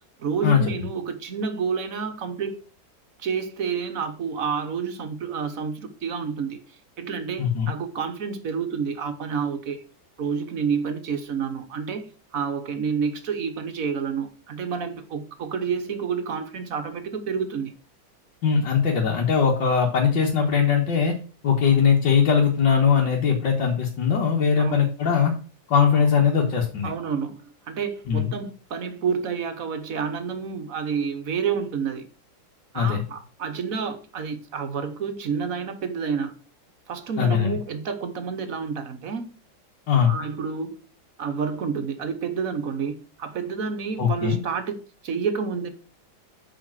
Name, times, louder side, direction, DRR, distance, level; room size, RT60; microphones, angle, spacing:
voice 1, 0.2-2.6 3.2-6.6 7.0-9.8 10.2-12.1 12.3-17.7 24.6-24.9 25.9-26.1 26.8-27.4 27.7-32.1 32.7-36.3 36.9-39.3 40.1-40.8 41.2-45.7, right 6 dB, 50° right, 1.3 m, -29 dB
voice 2, 18.4-21.1 21.4-25.3 25.7-26.9 28.1-28.3 32.7-33.0 37.2-37.6 39.9-40.1 44.0-44.4, left 6 dB, 70° left, 2.1 m, -20 dB
6.9 x 5.0 x 6.1 m
omnidirectional pair, 2.1 m